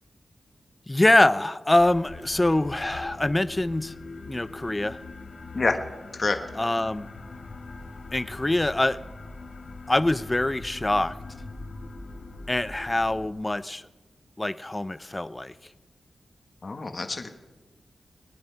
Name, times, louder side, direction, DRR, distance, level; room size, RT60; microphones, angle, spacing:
voice 1, 0.9-4.0 4.3-5.0 6.5-7.1 8.1-9.0 9.9-11.2 12.5-13.9 14.4-15.5, left 1 dB, 15° left, 16 dB, 0.5 m, -24 dB
sound 1, 1.8-13.3, left 3 dB, 55° left, 1.9 m, -42 dB
voice 2, 16.6-17.3, left 3 dB, 40° left, 6 dB, 1.3 m, -26 dB
20.5 x 10.5 x 5.7 m, 1.2 s
wide cardioid pair, 115°, 0 cm